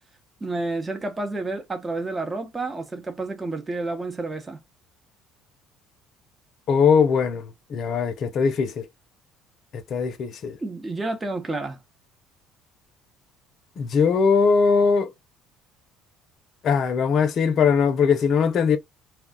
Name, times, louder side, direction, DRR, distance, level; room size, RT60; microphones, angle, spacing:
voice 1, 0.4-4.6 10.6-11.8, right 2 dB, 20° right, 0.8 m, -30 dB
voice 2, 6.7-8.8 9.7-10.6 13.8-15.1 16.6-18.8, left 6 dB, 55° left, 0.7 m, -20 dB
2.3 x 2.3 x 3.7 m
cardioid pair, 100°, 0 cm